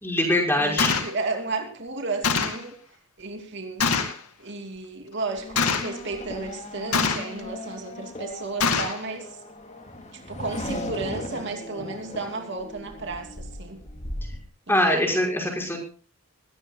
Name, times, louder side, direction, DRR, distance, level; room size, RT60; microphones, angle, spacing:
voice 1, 0.0-1.0 14.7-15.8, left 1 dB, 10° left, 1 dB, 5.6 m, -23 dB
voice 2, 0.6-2.8 3.2-3.9 4.4-9.4 10.1-13.8 14.7-15.2, right 3 dB, 50° right, 4 dB, 2.8 m, -33 dB
Gunshot gunfire, 0.8-1.1 2.2-2.6 3.8-4.2 5.6-6.0 6.9-7.4 8.6-9.0, left 5 dB, 80° left, 2.4 m, -24 dB
Race car auto racing / Accelerating revving vroom, 5.3-14.4, left 1 dB, 30° left, 2.6 m, -37 dB
21.5 x 17.5 x 2.3 m, 0.37 s
head